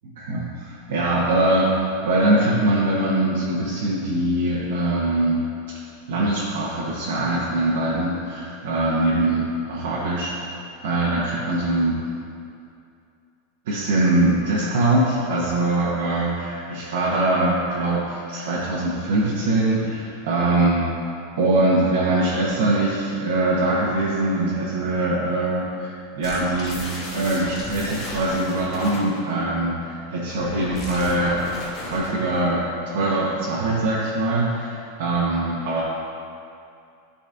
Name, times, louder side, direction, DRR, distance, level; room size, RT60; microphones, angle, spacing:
voice 1, 0.0-5.4 6.1-10.3 10.8-12.0 13.7-20.8 21.4-31.4 31.8-35.8, right 2 dB, 70° right, -6 dB, 1.0 m, -22 dB
sound 1, 26.2-29.2 30.2-32.5, left 2 dB, 35° left, 1.1 m, -35 dB
10.5 x 4.1 x 2.6 m, 2.5 s
supercardioid pair, 145°, 0 cm